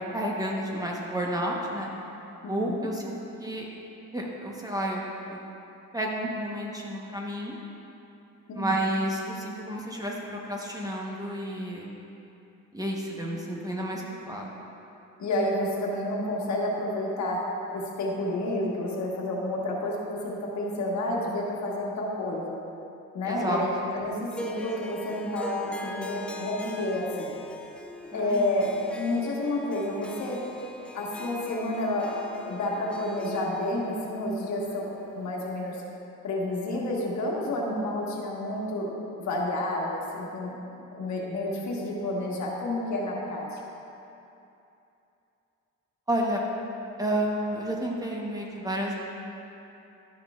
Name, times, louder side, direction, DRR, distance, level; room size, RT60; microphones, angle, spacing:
voice 1, 0.0-1.9 2.5-3.1 3.4-3.7 4.1-5.0 5.3-5.4 5.9-7.5 8.5-11.9 12.7-14.5 23.2-23.6 28.1-28.5 46.1-46.4 47.0-48.9, right 1 dB, 10° right, -2 dB, 1.0 m, -31 dB
voice 2, 2.4-2.9 8.5-8.8 15.2-17.4 17.7-22.6 23.1-27.3 28.1-28.7 28.9-30.4 30.9-32.1 32.4-35.8 36.2-38.9 39.2-40.5 40.9-43.6, left 1 dB, 65° left, -3 dB, 1.5 m, -30 dB
Harp, 24.3-35.6, left 1 dB, 5° left, 0.5 m, -42 dB
11.5 x 6.5 x 2.4 m, 2.8 s
cardioid pair, 90°, 30 cm